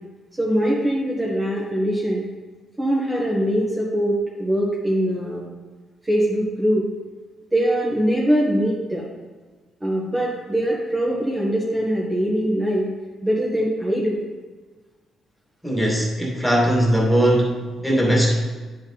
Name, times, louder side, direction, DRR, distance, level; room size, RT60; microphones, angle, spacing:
voice 1, 0.4-2.3 2.8-5.4 6.0-6.8 7.5-9.1 9.8-12.9 13.2-14.2, equal, 15° right, -5 dB, 1.7 m, -22 dB
voice 2, 15.6-17.6 17.8-18.3, equal, 5° left, -3 dB, 2.3 m, -19 dB
9.9 x 5.2 x 4.3 m, 1.3 s
cardioid pair, 90°, 0 cm